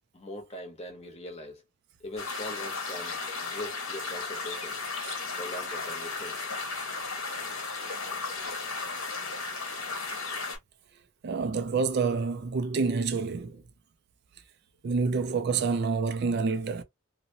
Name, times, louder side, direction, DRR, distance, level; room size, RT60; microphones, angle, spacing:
voice 1, 0.1-1.6 2.0-4.8 5.4-6.4 6.9-7.0 7.8-8.0 15.3-15.4, left 1 dB, 30° left, 0.9 m, -42 dB
sound 1, 2.2-10.6, left 4 dB, 75° left, 1.1 m, -35 dB
voice 2, 11.2-13.6 14.8-16.8, right 4 dB, 50° right, 0.3 m, -28 dB
2.6 x 2.1 x 2.7 m
head